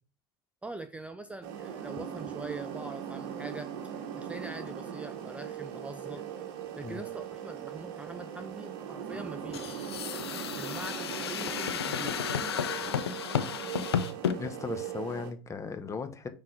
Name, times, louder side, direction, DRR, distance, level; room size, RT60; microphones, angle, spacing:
voice 1, 0.6-3.7 4.2-6.2 6.8-9.8 10.6-12.4, right 2 dB, 10° right, 0.5 m, -43 dB
sound 1, 1.4-15.3, right 8 dB, 60° right, 1.2 m, -40 dB
sound 2, 9.5-14.4, left 8 dB, 90° left, 0.6 m, -32 dB
voice 2, 14.4-16.3, left 5 dB, 25° left, 1.1 m, -37 dB
5.9 x 3.7 x 4.9 m
hypercardioid pair, 90°, 13 cm